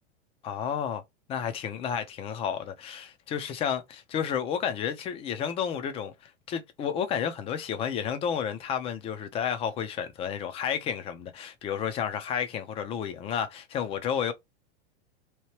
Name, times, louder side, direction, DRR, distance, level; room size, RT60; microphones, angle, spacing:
voice 1, 0.4-1.0 1.3-14.3, left 8 dB, 20° left, 0.4 m, -31 dB
2.9 x 2.2 x 3.0 m
supercardioid pair, 145°, 32 cm